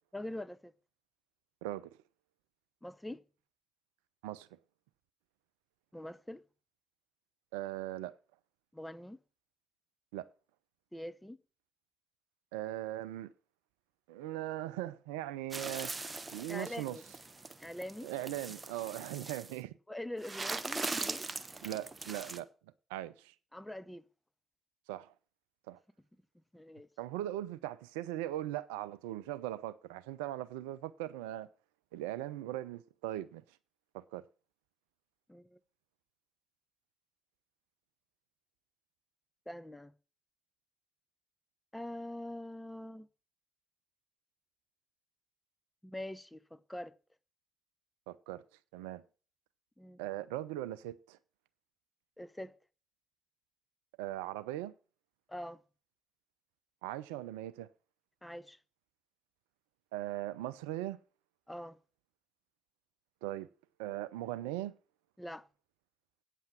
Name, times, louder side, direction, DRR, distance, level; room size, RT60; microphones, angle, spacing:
voice 1, 0.1-0.7 2.8-3.2 5.9-6.4 8.7-9.2 10.9-11.4 16.5-17.0 17.6-18.1 19.9-21.3 23.5-24.1 26.5-26.9 35.3-35.6 39.5-39.9 41.7-43.1 45.8-46.9 49.8-50.0 52.2-52.5 55.3-55.6 58.2-58.6 61.5-61.8 65.2-65.5, left 1 dB, 10° left, 0.7 m, -43 dB
voice 2, 7.5-8.2 10.1-10.3 12.5-13.3 14.1-15.9 16.3-17.0 18.0-19.8 21.6-22.5 22.9-23.3 24.9-25.1 25.7-25.8 27.0-31.5 31.9-33.4 33.9-34.2 48.1-48.4 48.7-49.0 50.0-51.2 54.0-54.7 56.8-57.7 59.9-61.0 63.2-63.5 63.8-64.7, right 14 dB, 80° right, 0.4 m, -39 dB
sound 1, 15.5-19.6 20.2-22.4, right 3 dB, 30° right, 1.0 m, -41 dB
9.0 x 7.3 x 5.9 m
figure-of-eight pair, 40°, 0 cm